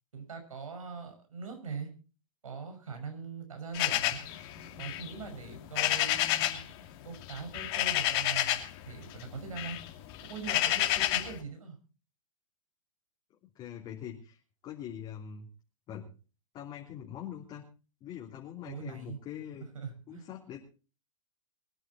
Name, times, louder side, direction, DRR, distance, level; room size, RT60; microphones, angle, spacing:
voice 1, 0.1-1.9 2.4-4.2 4.8-6.7 7.0-9.8 10.2-11.8 18.6-19.2 19.7-20.3, right 5 dB, 80° right, 5 dB, 6.0 m, -42 dB
sound 1, 3.7-6.7 7.0-8.8 9.1-11.4, left 13 dB, 45° left, 2.6 m, -30 dB
voice 2, 13.4-15.5 15.9-16.1 16.5-17.6 18.0-19.7 20.1-20.6, left 9 dB, 30° left, -2 dB, 3.1 m, -43 dB
23.0 x 10.5 x 4.2 m, 0.36 s
hypercardioid pair, 115°, 17 cm